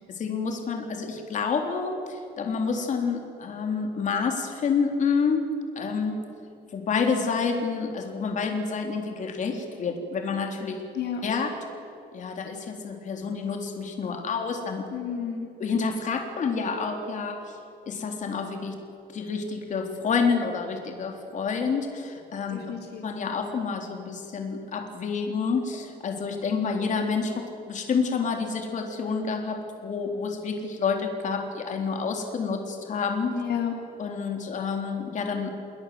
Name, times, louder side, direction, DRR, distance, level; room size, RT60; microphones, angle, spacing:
voice 1, 0.1-5.4 5.8-6.2 6.7-10.8 11.2-11.5 12.1-14.9 15.6-17.6 17.9-18.8 19.1-22.6 23.0-33.3 34.0-35.5, left 5 dB, 45° left, 3 dB, 3.8 m, -28 dB
voice 2, 14.9-15.5 22.5-23.3 33.3-33.7, left 8 dB, 65° left, 2 dB, 3.3 m, -31 dB
29.0 x 21.0 x 7.9 m, 2.6 s
cardioid pair, 160°, 18 cm